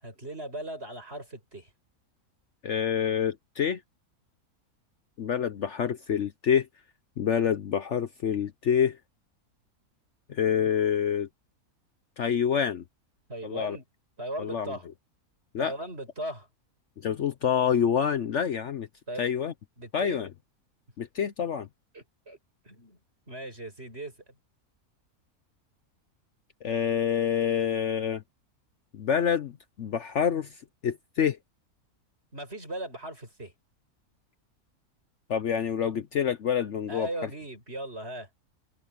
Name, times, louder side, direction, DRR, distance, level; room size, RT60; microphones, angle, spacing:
voice 1, 0.0-1.7 13.3-13.9 14.2-14.9 15.6-16.5 19.1-19.2 19.8-20.2 21.9-22.4 22.6-23.0 23.3-24.2 32.3-33.5 36.9-38.5, right 1 dB, 45° right, 7.1 m, -38 dB
voice 2, 2.6-3.8 5.2-6.7 7.2-9.0 10.3-11.3 12.2-12.8 13.4-13.8 14.4-14.7 15.5-15.7 17.0-18.9 19.2-19.5 19.9-20.3 21.0-21.7 26.6-28.2 28.9-29.5 29.8-30.5 30.8-31.4 35.3-37.1, left 8 dB, 60° left, 1.0 m, -27 dB
open air
omnidirectional pair, 1.6 m